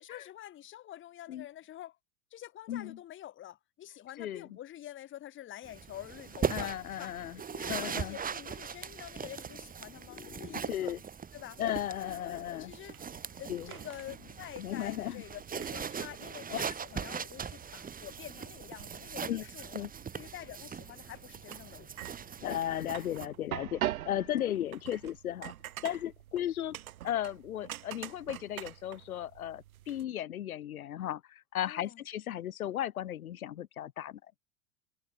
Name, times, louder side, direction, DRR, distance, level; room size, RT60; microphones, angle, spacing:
voice 1, 0.0-2.0 2.3-10.9 11.3-11.6 12.0-13.0 13.4-19.7 20.1-21.9 31.6-32.0, left 12 dB, 25° left, 1.2 m, -47 dB
voice 2, 2.7-3.0 4.2-4.5 6.5-7.4 7.7-8.2 10.1-11.0 11.6-12.7 13.5-13.7 14.6-15.2 16.5-16.6 19.3-19.4 19.7-19.9 22.4-25.5 25.8-26.8 27.0-34.2, left 11 dB, 70° left, 1.4 m, -35 dB
sound 1, 5.6-23.3, right 7 dB, 20° right, 2.0 m, -40 dB
sound 2, 12.9-30.0, right 13 dB, 70° right, 1.2 m, -45 dB
figure-of-eight pair, 85°, 44 cm